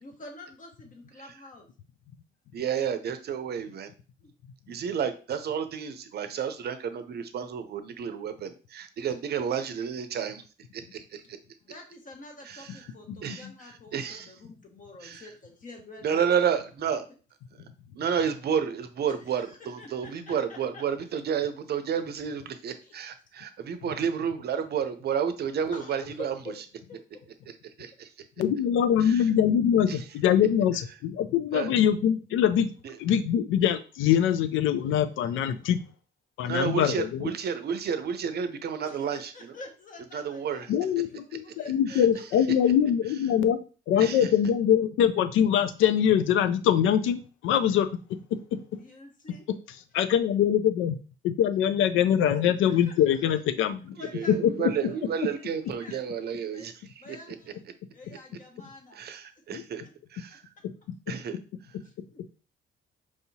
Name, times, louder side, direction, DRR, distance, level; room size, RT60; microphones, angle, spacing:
voice 1, 0.0-1.7 4.2-4.3 11.6-16.3 19.1-20.8 22.8-22.9 25.7-26.5 26.9-27.2 38.8-40.7 41.1-42.2 48.7-49.5 52.4-52.9 53.9-54.4 54.8-56.7 57.0-57.6 57.9-59.0 60.3-60.4 61.8-62.2, left 2 dB, 40° left, 2 dB, 1.3 m, -47 dB
voice 2, 2.5-3.9 4.7-10.4 10.7-11.4 12.4-12.9 13.2-14.3 15.0-15.3 16.0-17.0 17.6-17.7 18.0-26.3 27.8-28.1 29.0-29.3 29.9-30.0 31.5-31.7 32.8-32.9 36.4-39.5 40.1-40.7 41.9-42.1 44.0-44.3 54.0-57.4 58.9-59.8 60.1-60.4 61.1-61.4, right 7 dB, 55° right, 9 dB, 0.6 m, -31 dB
voice 3, 28.4-32.7 33.0-35.8 36.4-37.3 40.7-47.9 48.3-48.6 49.9-51.0 51.2-54.0 54.3-54.7 59.5-59.6, left 9 dB, 85° left, 12 dB, 0.4 m, -23 dB
4.8 x 2.8 x 2.7 m, 0.36 s
cardioid pair, 90°, 20 cm